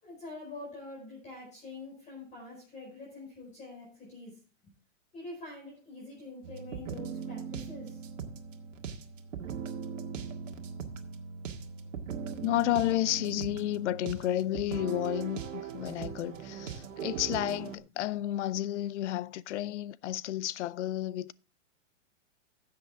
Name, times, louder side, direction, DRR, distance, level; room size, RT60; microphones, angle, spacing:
voice 1, 0.0-4.7 5.1-8.1, left 2 dB, 20° left, 4.6 m, -45 dB
sound 1, 6.4-17.7, right 7 dB, 75° right, 1.8 m, -39 dB
voice 2, 12.4-21.3, left 14 dB, 65° left, 0.6 m, -31 dB
13.0 x 7.9 x 3.4 m
hypercardioid pair, 145°, 38 cm